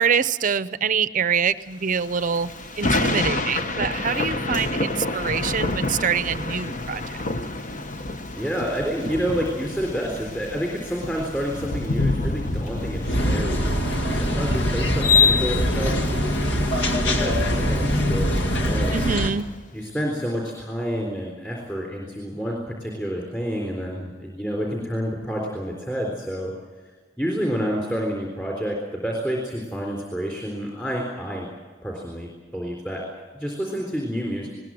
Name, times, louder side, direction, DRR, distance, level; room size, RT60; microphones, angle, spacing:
voice 1, 0.0-2.5 2.8-7.0 18.9-19.5, right 6 dB, 45° right, 14 dB, 0.6 m, -25 dB
Thunder / Rain, 1.9-19.4, left 2 dB, 45° left, 1.1 m, -29 dB
voice 2, 8.1-18.9 19.7-26.5 27.2-31.5 31.8-33.0 33.3-34.5, equal, 10° left, -1 dB, 3.7 m, -29 dB
sound 1, 13.0-19.3, left 2 dB, 75° left, 2.0 m, -22 dB
20.5 x 19.5 x 7.8 m, 1.4 s
head